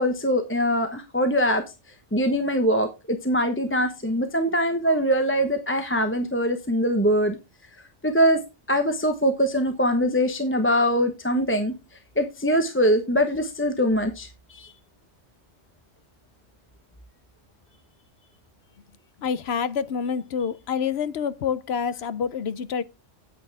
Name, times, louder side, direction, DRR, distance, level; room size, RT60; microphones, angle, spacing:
voice 1, 0.0-1.6 2.1-7.4 8.0-8.4 8.7-11.7 12.2-14.7, equal, 10° left, 0.9 m, -23 dB
voice 2, 19.2-22.8, left 7 dB, 65° left, 0.9 m, -27 dB
9.0 x 8.8 x 3.4 m
omnidirectional pair, 1.2 m